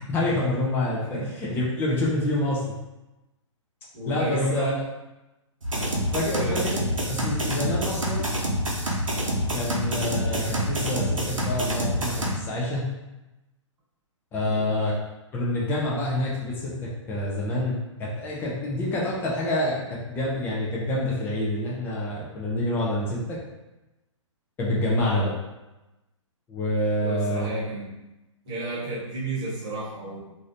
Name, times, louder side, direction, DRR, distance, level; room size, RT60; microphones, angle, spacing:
voice 1, 0.1-2.7 4.1-4.7 6.1-6.8 7.1-8.3 9.5-12.9 14.3-14.9 15.3-23.4 24.6-25.4 26.5-27.5, left 1 dB, 15° left, -5 dB, 0.5 m, -27 dB
voice 2, 3.9-4.8 6.3-6.6 14.4-14.8 27.0-27.9 28.4-30.2, right 1 dB, 25° right, -9 dB, 1.3 m, -31 dB
sound 1, 5.6-12.3, equal, 85° right, 0.6 m, -27 dB
3.0 x 2.6 x 2.6 m, 1.0 s
figure-of-eight pair, 120°, 16 cm